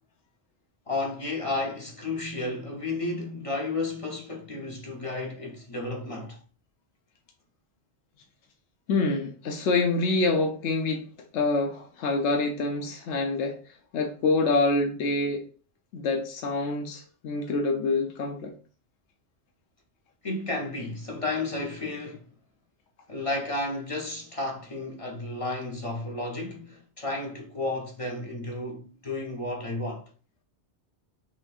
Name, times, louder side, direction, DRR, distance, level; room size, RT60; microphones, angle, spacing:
voice 1, 0.9-6.4 20.2-22.2 23.1-30.0, left 2 dB, 35° left, 0.7 m, -32 dB
voice 2, 8.9-11.1 11.3-13.6 13.9-15.5 15.9-18.5, left 3 dB, 80° left, 0.9 m, -26 dB
5.9 x 2.6 x 2.4 m
omnidirectional pair, 1.1 m